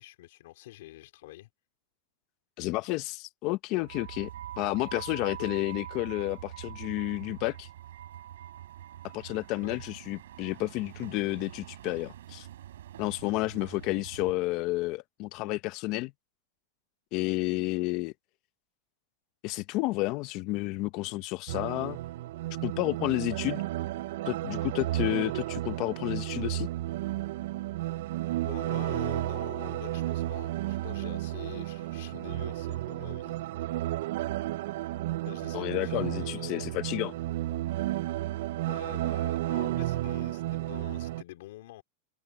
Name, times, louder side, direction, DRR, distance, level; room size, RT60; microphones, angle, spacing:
voice 1, 0.0-1.5 5.4-5.5 9.6-9.8 28.4-33.4 35.3-36.8 38.7-41.8, left 16 dB, 65° left, 3.7 m, -45 dB
voice 2, 2.6-4.3 4.6-7.7 9.1-12.5 13.0-16.1 17.1-18.1 19.4-22.0 22.6-23.7 24.3-26.7 35.5-37.1, left 20 dB, 40° left, 0.8 m, -31 dB
sound 1, 3.8-14.3, right 12 dB, 85° right, 4.3 m, -44 dB
sound 2, 21.5-41.2, right 16 dB, 60° right, 0.3 m, -32 dB
supercardioid pair, 155°, 0 cm